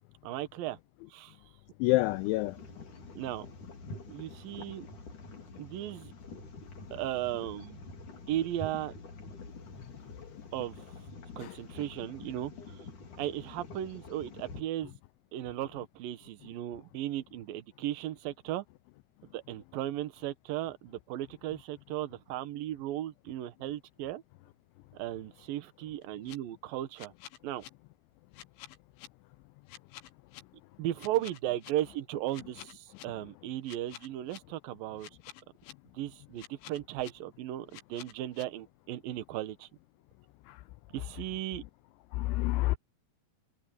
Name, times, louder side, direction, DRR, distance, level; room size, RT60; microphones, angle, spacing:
voice 1, 0.2-0.8 1.1-1.3 3.2-3.5 4.1-4.9 5.6-6.1 6.9-7.8 8.3-9.0 10.5-10.9 11.4-12.5 13.2-14.9 15.3-18.6 19.3-24.2 24.9-27.1 27.4-27.6 30.8-35.1 35.9-39.7 40.9-41.6, right 13 dB, 70° right, 2.2 m, -36 dB
voice 2, 1.8-2.6 11.4-11.6 40.5-40.6 42.1-42.8, left 19 dB, 90° left, 2.6 m, -28 dB
sound 1, 1.8-14.6, left 3 dB, 40° left, 4.7 m, -47 dB
sound 2, 26.0-26.4 27.0-27.7 28.3-29.1 29.7-30.4 31.0-31.7 32.3-33.0 33.7-34.4 35.0-35.7 36.4-37.1 37.7-38.4, left 12 dB, 70° left, 3.8 m, -48 dB
omnidirectional pair, 5.8 m